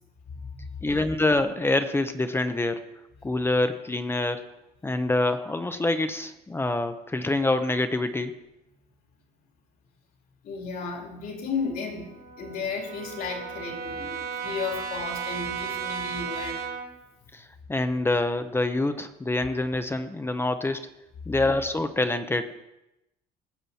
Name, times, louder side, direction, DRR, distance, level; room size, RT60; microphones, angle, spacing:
voice 1, 0.8-2.9 3.2-4.4 4.8-8.3 17.3-17.4 17.7-20.9 21.3-22.5, left 2 dB, 15° left, 9 dB, 0.7 m, -26 dB
voice 2, 10.4-16.7, left 5 dB, 60° left, 1 dB, 3.0 m, -34 dB
Brass instrument, 11.5-17.0, right 6 dB, 65° right, 1.2 m, -35 dB
19.0 x 7.6 x 4.2 m, 0.90 s
cardioid pair, 110°, 17 cm